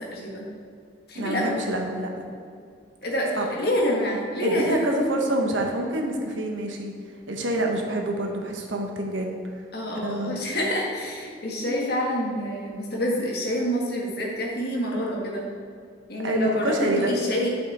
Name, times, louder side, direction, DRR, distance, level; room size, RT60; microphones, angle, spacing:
voice 1, 0.1-0.5 1.1-1.6 3.0-5.0 9.7-15.5 16.1-17.5, equal, 55° left, -2 dB, 1.7 m, -27 dB
voice 2, 1.1-2.1 3.3-3.5 4.4-6.9 7.3-9.4 10.0-10.4 16.2-17.2, right 1 dB, 80° right, 2 dB, 1.2 m, -27 dB
9.2 x 5.9 x 4.3 m, 2.2 s
head